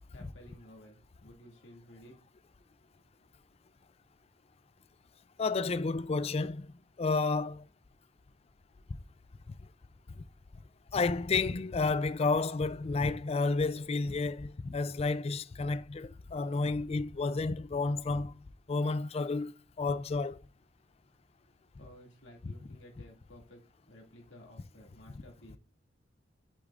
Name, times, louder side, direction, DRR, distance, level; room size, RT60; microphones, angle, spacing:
voice 1, 0.0-2.2 2.6-2.9 21.4-25.6, equal, 75° left, 2.3 m, -55 dB
voice 2, 5.4-7.6 10.9-18.4 18.7-19.5 19.8-20.4 22.4-22.5, left 3 dB, 30° left, 0.4 m, -31 dB
8.7 x 8.5 x 2.5 m
head